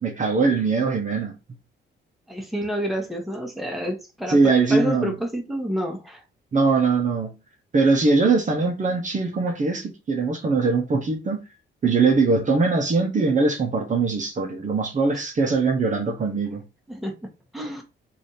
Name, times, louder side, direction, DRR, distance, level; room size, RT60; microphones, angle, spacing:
voice 1, 0.0-1.4 4.3-5.1 6.5-7.3 7.7-11.4 11.8-16.6, right 4 dB, 35° right, 0.8 m, -21 dB
voice 2, 2.3-6.2 16.9-17.2 17.5-17.8, equal, ahead, 1.1 m, -29 dB
3.3 x 2.7 x 4.1 m
cardioid pair, 90°, 21 cm